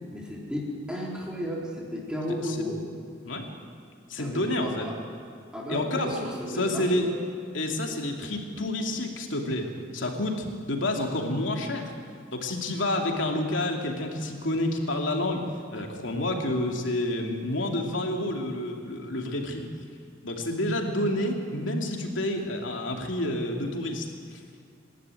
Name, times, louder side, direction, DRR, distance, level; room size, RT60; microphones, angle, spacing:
voice 1, 0.1-2.8 4.2-4.9 5.5-7.2, equal, 5° right, -3 dB, 3.7 m, -33 dB
voice 2, 2.4-2.8 3.2-3.4 4.1-4.9 5.7-6.2 6.5-7.1 7.5-11.9 12.3-15.4 15.7-19.7 20.2-24.1 24.3-24.4, left 1 dB, 90° left, 2 dB, 2.8 m, -29 dB
26.5 x 12.5 x 9.2 m, 2.4 s
head